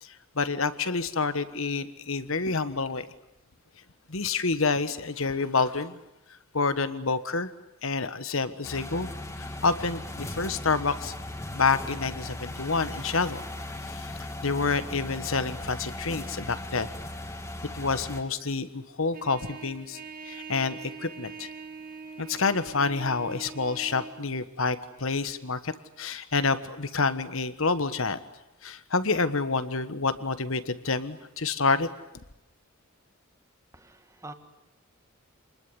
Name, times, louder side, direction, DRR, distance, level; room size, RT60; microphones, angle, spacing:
voice 1, 0.0-3.1 4.1-6.0 6.5-7.5 7.8-9.1 9.6-11.1 11.5-13.4 13.9-14.1 14.4-16.9 17.7-20.0 20.2-21.5 22.2-25.7 26.0-28.2 28.6-31.9, left 4 dB, 65° left, 13 dB, 1.4 m, -28 dB
sound 1, 8.6-18.2, left 1 dB, 15° left, 2.4 m, -38 dB
Trumpet, 19.1-24.2, right 4 dB, 40° right, 2.2 m, -43 dB
voice 2, 33.7-34.3, right 2 dB, 15° right, 7 dB, 1.7 m, -45 dB
28.0 x 20.5 x 9.9 m, 0.89 s
head